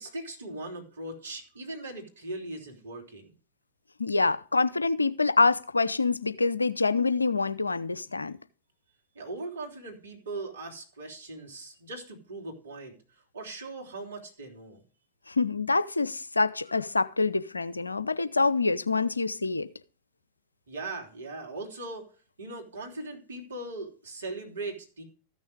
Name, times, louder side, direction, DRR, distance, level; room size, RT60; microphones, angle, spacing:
voice 1, 0.0-3.3 9.1-14.8 20.7-22.1 22.4-25.0, right 2 dB, 65° right, 3.1 m, -39 dB
voice 2, 4.0-8.4 15.3-19.7, left 3 dB, 80° left, 0.6 m, -26 dB
14.0 x 6.4 x 4.8 m
figure-of-eight pair, 90°, 0 cm